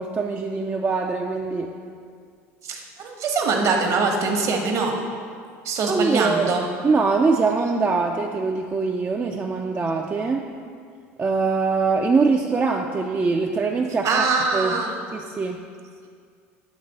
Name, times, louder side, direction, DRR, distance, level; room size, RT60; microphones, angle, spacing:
voice 1, 0.0-1.7 5.9-6.5 6.8-10.5 11.2-14.3 14.5-14.8 15.1-15.6, right 4 dB, 25° right, 1 dB, 0.4 m, -23 dB
voice 2, 2.6-5.0 5.6-6.6 14.0-14.9, right 4 dB, 50° right, 2 dB, 1.0 m, -23 dB
8.2 x 3.1 x 4.0 m, 2.1 s
hypercardioid pair, 80°, 7 cm